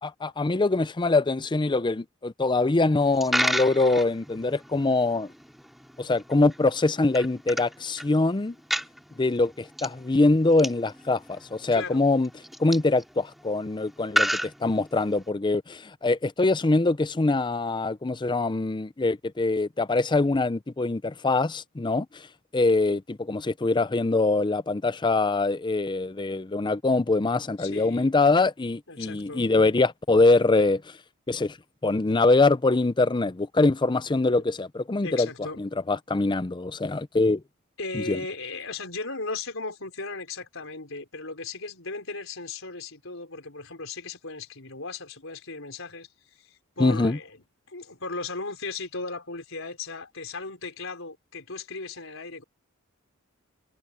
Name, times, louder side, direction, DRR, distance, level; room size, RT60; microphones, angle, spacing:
voice 1, 0.0-5.3 6.0-8.5 9.2-12.3 12.6-22.3 22.5-30.8 31.3-31.6 31.8-35.3 35.6-37.4 37.9-38.2 46.8-47.2, left 3 dB, 20° left, 0.5 m, -23 dB
Coin (dropping), 3.0-15.3, equal, ahead, 4.9 m, -34 dB
voice 2, 11.7-12.0 27.6-28.1 28.9-29.5 35.0-35.6 37.8-47.4 47.7-52.4, left 3 dB, 65° left, 5.2 m, -36 dB
head